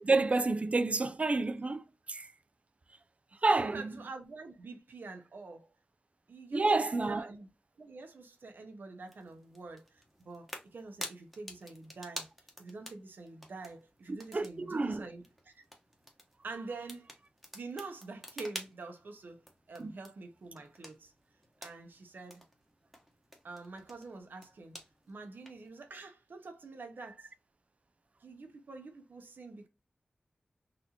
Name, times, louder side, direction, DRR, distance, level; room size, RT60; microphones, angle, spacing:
voice 1, 0.0-2.3 3.4-3.9 6.5-7.2 14.3-15.0 19.8-19.9, right 3 dB, 40° right, 0.3 m, -29 dB
voice 2, 3.6-5.7 6.3-7.5 7.8-12.3 12.6-15.6 16.4-17.1 17.5-21.1 21.6-22.4 23.4-24.8 25.1-27.3 28.2-29.7, right 3 dB, 85° right, 0.9 m, -46 dB
sound 1, 9.0-25.7, equal, ahead, 1.1 m, -50 dB
4.1 x 2.7 x 2.8 m
wide cardioid pair, 90°, 3 cm